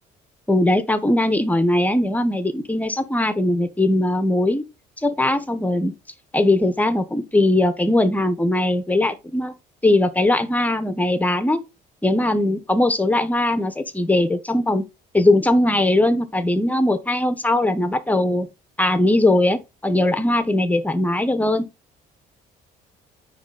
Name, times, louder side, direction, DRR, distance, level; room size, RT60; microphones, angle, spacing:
voice 1, 0.5-4.6 5.0-5.9 6.3-9.5 9.8-11.6 12.0-14.9 15.1-18.5 18.8-21.7, left 1 dB, 10° left, 0.8 m, -20 dB
9.5 x 3.2 x 3.8 m
cardioid pair, 110°, 17 cm